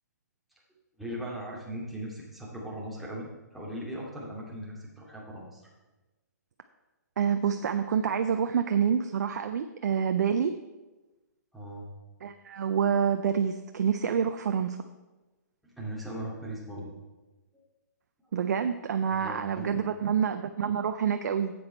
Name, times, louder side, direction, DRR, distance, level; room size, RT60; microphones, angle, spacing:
voice 1, 1.0-5.6 11.5-11.9 15.6-16.9 19.1-19.8, right 1 dB, ahead, -6 dB, 2.3 m, -39 dB
voice 2, 7.2-10.5 12.2-14.8 18.3-21.5, right 7 dB, 65° right, 8 dB, 0.5 m, -27 dB
9.6 x 7.8 x 4.4 m, 1.1 s
hypercardioid pair, 135°, 10 cm